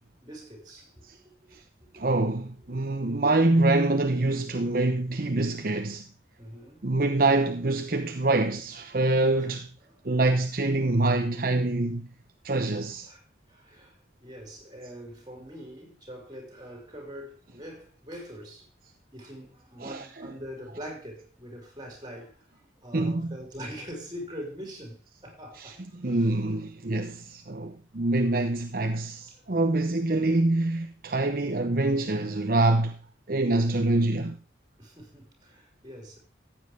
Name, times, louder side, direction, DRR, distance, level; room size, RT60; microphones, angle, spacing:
voice 1, 0.2-1.6 1.9-2.0 2.7-2.8 6.4-6.9 9.3-9.5 9.8-9.9 13.1-18.7 19.1-26.3 29.2-29.4 34.8-36.2, equal, 25° right, 5.6 m, -43 dB
voice 2, 1.9-6.1 6.8-9.7 10.0-12.1 12.4-13.1 19.8-20.3 22.9-23.4 25.6-33.0 33.3-34.4, right 2 dB, 55° right, 0.9 m, -25 dB
15.0 x 8.8 x 3.4 m
head